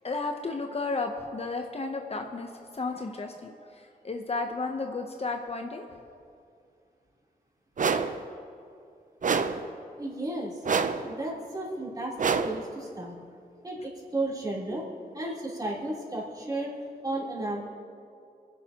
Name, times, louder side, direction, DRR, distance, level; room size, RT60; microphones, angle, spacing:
voice 1, 0.0-2.5 2.7-3.5 4.0-5.9, left 3 dB, 40° left, 4 dB, 0.8 m, -32 dB
sound 1, 7.8-8.2 9.2-9.7 10.6-11.1 12.2-12.7, right 5 dB, 55° right, 0.6 m, -27 dB
voice 2, 10.0-10.6 11.0-13.1 13.6-14.8 15.1-16.7 17.0-17.6, right 2 dB, 25° right, -6 dB, 3.5 m, -33 dB
26.0 x 10.0 x 2.9 m, 2.4 s
wide cardioid pair, 85°, 16 cm